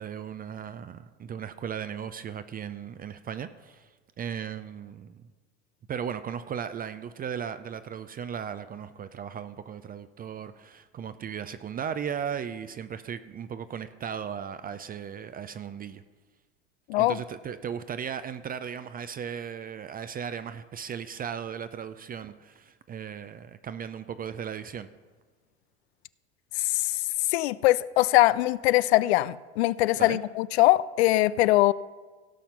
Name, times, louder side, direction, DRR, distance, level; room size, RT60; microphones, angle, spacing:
voice 1, 0.0-5.2 5.9-16.0 17.0-24.9 30.0-30.2, right 8 dB, 25° right, 0.5 m, -36 dB
voice 2, 26.6-26.9 27.3-31.7, left 17 dB, 70° left, 0.5 m, -22 dB
17.0 x 5.8 x 5.4 m
hypercardioid pair, 80°, 34 cm